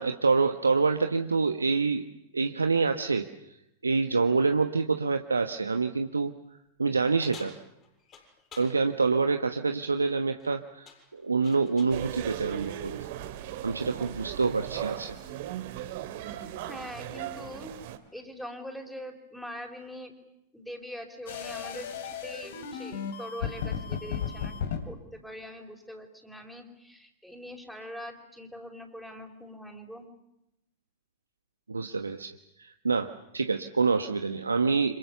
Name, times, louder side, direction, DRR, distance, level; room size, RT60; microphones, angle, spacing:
voice 1, 0.0-2.0 2.3-3.3 3.8-6.3 6.8-7.5 8.5-13.1 13.6-15.2 31.7-35.0, right 4 dB, 85° right, 7 dB, 1.1 m, -26 dB
sound 1, 7.2-8.8 10.2-10.5 10.9-12.0, left 7 dB, 30° left, 7.2 m, -50 dB
sound 2, 11.9-18.0, right 12 dB, 55° right, 2.4 m, -37 dB
voice 2, 16.7-17.7 18.1-20.1 20.5-30.1, equal, ahead, 2 dB, 4.8 m, -43 dB
sound 3, 21.3-24.8, left 7 dB, 65° left, 3.5 m, -35 dB
29.0 x 26.0 x 7.0 m, 0.84 s
figure-of-eight pair, 95°, 0 cm